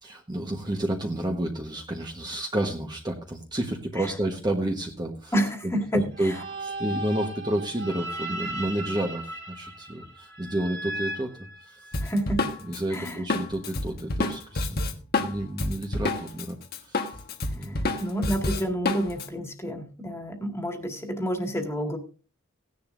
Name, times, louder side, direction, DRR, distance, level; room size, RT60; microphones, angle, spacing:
voice 1, 0.0-5.3 5.9-6.3 6.6-11.3 11.6-11.9 12.6-14.9 15.2-16.6 16.8-17.0 17.5-17.8, right 1 dB, 20° right, 2 dB, 1.2 m, -30 dB
voice 2, 5.3-6.4 12.0-12.4 12.9-13.2 17.7-22.0, equal, 15° left, 3 dB, 2.0 m, -29 dB
sound 1, 6.1-12.2, right 1 dB, 55° right, 2.9 m, -36 dB
Drum kit, 11.9-16.5 16.7-19.3, left 2 dB, 50° left, 1.2 m, -28 dB
17.0 x 10.5 x 2.5 m, 0.35 s
head